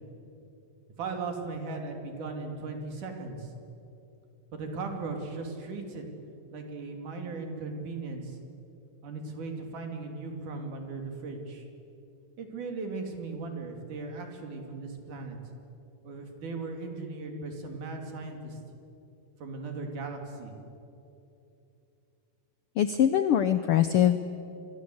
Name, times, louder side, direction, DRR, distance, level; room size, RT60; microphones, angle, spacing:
voice 1, 1.0-3.5 4.5-6.0 6.5-8.4 9.0-11.7 12.4-15.4 16.0-18.6 19.4-20.5, right 3 dB, 90° right, 3 dB, 4.4 m, -37 dB
voice 2, 22.8-24.2, left 10 dB, 80° left, 11 dB, 1.2 m, -23 dB
27.0 x 22.5 x 8.0 m, 2.8 s
omnidirectional pair, 3.5 m